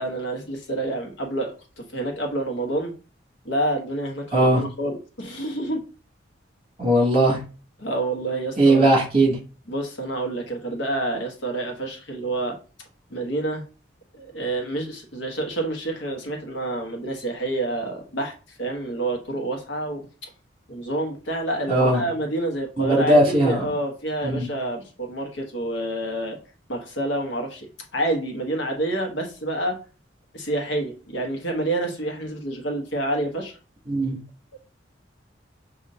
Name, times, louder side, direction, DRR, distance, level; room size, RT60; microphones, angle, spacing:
voice 1, 0.0-2.9 3.4-5.8 7.8-8.9 9.7-12.6 13.1-13.6 14.1-18.3 18.6-20.0 20.7-26.4 26.7-29.8 30.3-33.5 34.5-34.6, right 2 dB, 80° left, 1.2 m, -28 dB
voice 2, 4.3-4.6 6.8-7.4 8.6-9.4 21.7-22.0 22.8-23.7 24.2-24.5 33.9-34.2, right 1 dB, 30° right, 2.3 m, -18 dB
6.4 x 2.7 x 2.7 m
head